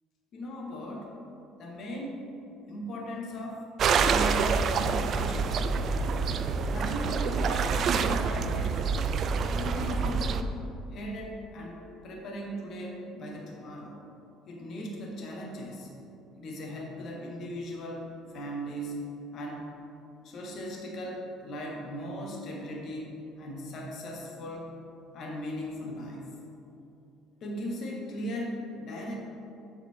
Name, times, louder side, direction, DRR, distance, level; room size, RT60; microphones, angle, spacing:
voice 1, 0.3-1.1 1.6-2.2 2.7-4.5 4.8-5.6 6.5-8.7 9.5-10.4 10.9-14.0 14.5-15.9 16.4-19.0 19.3-19.7 20.2-24.8 25.1-26.2 27.4-29.1, equal, 50° left, -1 dB, 1.1 m, -38 dB
sound 1, 3.8-10.4, right 5 dB, 45° right, 0.3 m, -27 dB
7.1 x 4.2 x 4.4 m, 2.8 s
cardioid pair, 130°, 0 cm